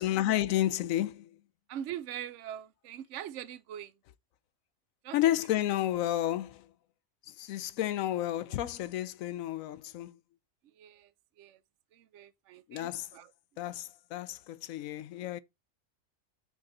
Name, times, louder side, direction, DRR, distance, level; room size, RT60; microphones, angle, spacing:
voice 1, 0.0-1.4 5.1-6.7 7.3-10.2 12.7-13.1 13.6-15.4, left 13 dB, 85° left, 1.0 m, -31 dB
voice 2, 1.7-3.9 5.0-5.2 8.5-8.6 10.6-11.1 11.4-11.6 11.9-13.3, right 10 dB, 65° right, 1.0 m, -42 dB
6.4 x 6.0 x 4.0 m
omnidirectional pair, 1.4 m